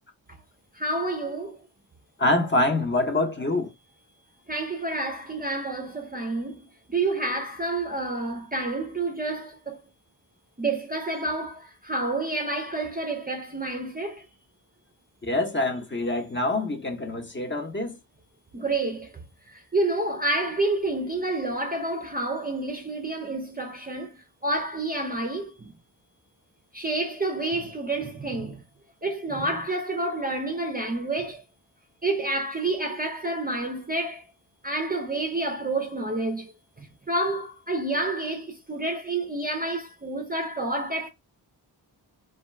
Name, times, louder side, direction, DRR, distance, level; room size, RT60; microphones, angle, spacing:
voice 1, 0.8-1.6 4.5-9.8 10.6-14.3 18.5-19.1 19.5-24.2 24.4-25.7 26.7-28.6 29.0-31.4 32.0-34.2 34.6-36.5 36.8-41.1, right 2 dB, 20° right, 0.5 m, -29 dB
voice 2, 2.2-3.7 15.2-18.0, left 2 dB, 25° left, 0.7 m, -25 dB
2.3 x 2.1 x 3.1 m
cardioid pair, 50°, 43 cm